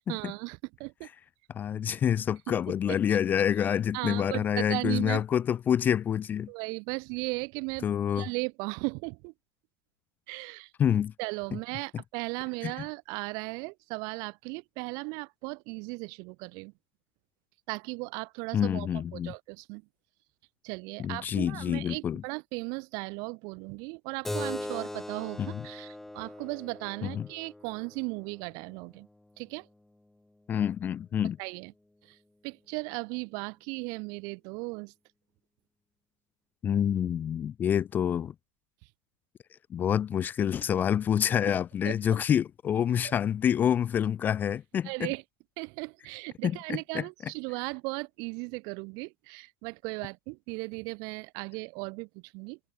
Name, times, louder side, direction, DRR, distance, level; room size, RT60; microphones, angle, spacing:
voice 1, 0.1-1.1 2.5-2.6 2.9-3.0 3.9-5.2 6.5-7.9 8.2-9.3 10.3-10.7 11.2-16.7 17.7-18.9 19.1-19.8 20.6-29.1 29.4-29.7 31.4-31.7 32.0-32.2 32.4-34.9 41.5-41.6 41.8-41.9 43.0-43.1 44.8-45.2 45.6-52.6, right 32 dB, 50° right, 1.9 m, -36 dB
voice 2, 1.5-6.5 7.8-8.3 10.8-11.1 12.6-12.7 18.5-19.3 21.0-22.2 25.4-25.6 27.0-27.3 30.5-31.4 36.6-38.3 39.7-45.1 46.4-47.0, left 9 dB, 25° left, 0.5 m, -27 dB
Keyboard (musical), 24.2-29.4, left 1 dB, 5° left, 0.8 m, -40 dB
supercardioid pair, 145°, 8 cm